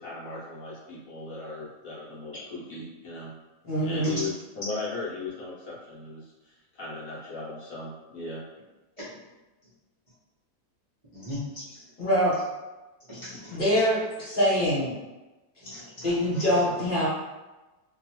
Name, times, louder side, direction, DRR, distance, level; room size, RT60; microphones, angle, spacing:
voice 1, 0.0-3.3 3.8-8.4, left 3 dB, 65° left, -7 dB, 1.0 m, -37 dB
voice 2, 3.6-4.2 12.0-12.3 13.5-14.9 16.0-17.1, equal, 40° left, -8 dB, 1.0 m, -24 dB
voice 3, 11.1-11.6 13.1-13.6 15.6-16.6, left 1 dB, 30° right, -12 dB, 0.6 m, -39 dB
2.6 x 2.3 x 2.9 m, 1.1 s
omnidirectional pair, 1.7 m